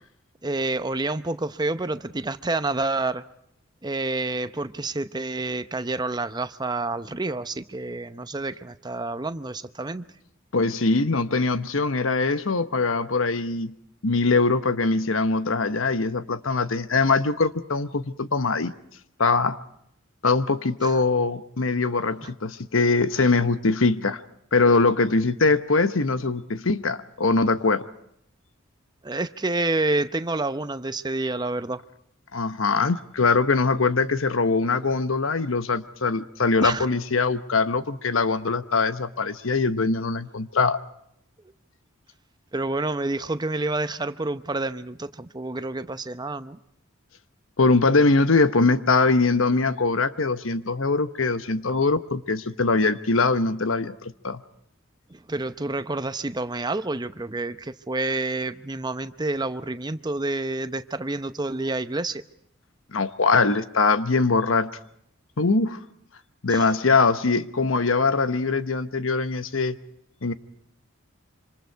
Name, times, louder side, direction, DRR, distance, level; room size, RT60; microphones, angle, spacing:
voice 1, 0.4-3.2 3.8-10.1 20.8-21.0 22.2-22.3 23.2-23.3 29.0-31.8 36.6-36.9 42.5-46.6 55.1-62.2 66.5-66.7, right 2 dB, 20° right, 11 dB, 0.8 m, -28 dB
voice 2, 10.5-13.7 14.0-18.7 19.2-19.6 20.2-24.2 24.5-27.8 32.3-40.8 47.6-54.4 62.9-64.7 65.4-65.8 66.4-69.8 70.2-70.3, left 3 dB, 75° left, 12 dB, 1.0 m, -22 dB
26.5 x 25.5 x 4.6 m, 0.74 s
head